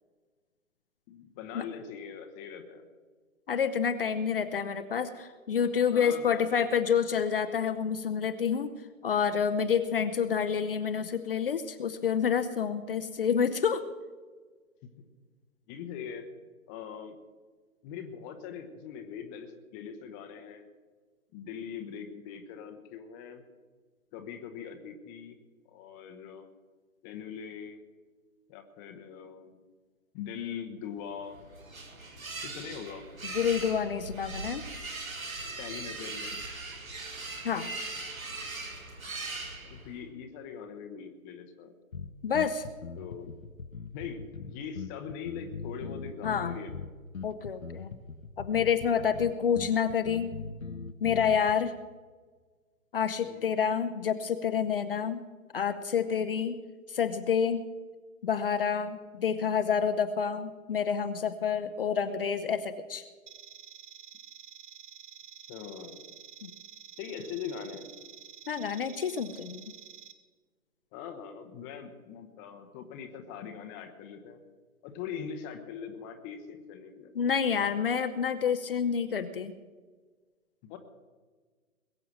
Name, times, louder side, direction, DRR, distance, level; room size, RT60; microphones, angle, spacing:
voice 1, 1.1-2.8 5.9-6.7 15.7-16.3 16.7-17.2 17.8-20.7 21.3-23.4 24.1-25.4 25.6-26.5 27.0-27.8 28.5-29.5 30.1-31.4 32.4-33.0 35.6-36.4 39.6-41.7 42.9-43.3 43.9-46.9 49.0-49.3 53.2-53.5 65.5-66.1 67.0-67.9 70.9-74.4 74.8-77.1 80.6-80.8, left 7 dB, 15° left, 6 dB, 0.9 m, -42 dB
voice 2, 3.5-8.7 9.0-13.8 33.2-34.6 37.4-37.7 42.2-42.6 46.2-46.5 47.2-47.9 48.4-50.3 51.0-51.7 52.9-55.2 55.5-56.6 56.9-57.6 58.2-63.0 66.4-66.5 68.5-69.6 77.1-79.5, left 7 dB, 40° left, 9 dB, 0.8 m, -28 dB
sound 1, 31.1-40.0, right 3 dB, 70° right, 4.6 m, -40 dB
sound 2, 41.9-51.5, left 4 dB, 70° left, 1.1 m, -41 dB
sound 3, 63.3-70.1, right 8 dB, 55° right, 1.4 m, -49 dB
21.0 x 8.0 x 7.4 m, 1.4 s
figure-of-eight pair, 130°, 43 cm